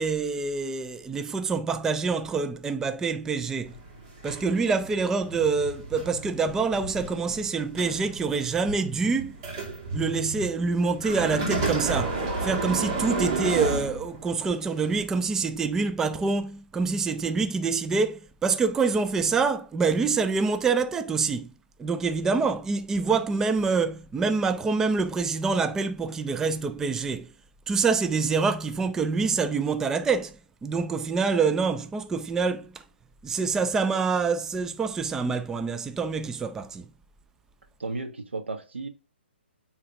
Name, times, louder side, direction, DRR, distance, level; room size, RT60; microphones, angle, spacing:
voice 1, 0.0-3.8 4.2-9.4 9.9-21.5 21.8-27.3 27.7-32.8 33.2-36.8, right 4 dB, 10° right, 0.3 m, -26 dB
sound 1, 3.6-14.5 15.2-15.3, right 3 dB, 35° right, 2.4 m, -32 dB
voice 2, 37.8-38.9, right 3 dB, 80° right, 1.5 m, -34 dB
9.1 x 3.5 x 3.5 m
hypercardioid pair, 135°, 6 cm